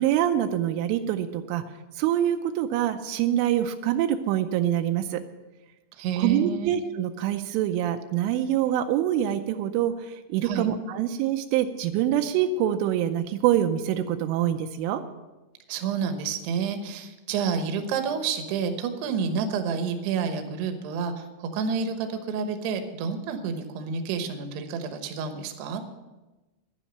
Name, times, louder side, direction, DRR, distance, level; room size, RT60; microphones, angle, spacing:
voice 1, 0.0-1.6 2.0-5.2 6.2-15.0, right 11 dB, 85° right, 7 dB, 3.1 m, -25 dB
voice 2, 6.0-6.7 10.4-10.7 15.7-25.8, right 6 dB, 70° right, 6 dB, 2.8 m, -29 dB
11.5 x 10.0 x 6.6 m, 1.1 s
omnidirectional pair, 5.6 m